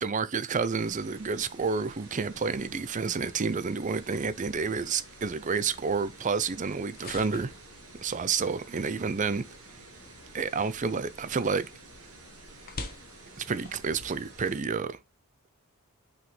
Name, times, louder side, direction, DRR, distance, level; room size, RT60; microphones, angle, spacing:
voice 1, 0.0-7.5 8.0-9.4 10.3-11.7 13.4-15.0, right 5 dB, 35° right, 0.5 m, -29 dB
sound 1, 0.7-14.6, right 2 dB, 70° right, 2.5 m, -51 dB
sound 2, 3.9-14.5, left 3 dB, 40° left, 1.0 m, -48 dB
6.1 x 5.1 x 3.1 m
head